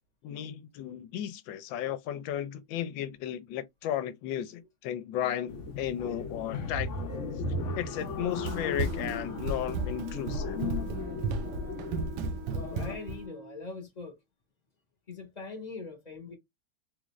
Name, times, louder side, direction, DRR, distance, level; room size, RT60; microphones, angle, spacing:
voice 1, 0.2-7.1 7.7-10.6, left 10 dB, 80° left, 1.3 m, -34 dB
sound 1, 5.5-13.0, left 3 dB, 55° left, 0.8 m, -37 dB
Run, 8.0-13.2, right 3 dB, 75° right, 1.2 m, -34 dB
Wind instrument woodwind instrument, 8.8-13.7, right 3 dB, 55° right, 0.9 m, -47 dB
voice 2, 12.6-14.2 15.1-16.4, left 4 dB, 30° left, 0.9 m, -42 dB
3.8 x 2.4 x 3.0 m
omnidirectional pair, 2.1 m